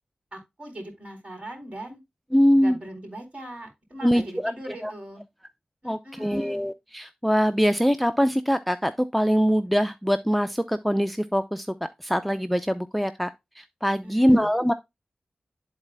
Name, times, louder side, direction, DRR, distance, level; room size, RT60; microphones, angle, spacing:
voice 1, 0.3-2.0 2.5-5.2 5.8-6.6 14.0-14.5, right 1 dB, 40° right, 4.2 m, -40 dB
voice 2, 2.3-2.8 4.0-4.5 4.8-4.9 5.8-11.7 12.0-13.3 13.6-14.7, equal, ahead, 0.5 m, -23 dB
12.0 x 4.1 x 2.2 m
cardioid pair, 45°, 3 cm